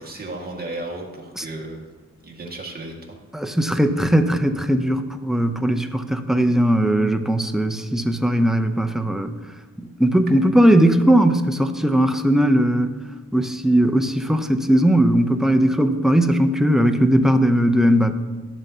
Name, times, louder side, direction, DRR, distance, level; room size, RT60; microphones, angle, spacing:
voice 1, 0.0-1.8 2.2-2.9, right 2 dB, 30° right, -1 dB, 1.7 m, -34 dB
voice 2, 3.3-9.4 9.8-12.9 13.3-18.1, right 1 dB, ahead, 6 dB, 0.6 m, -18 dB
12.0 x 7.2 x 2.8 m, 1.3 s
cardioid pair, 85°, 32 cm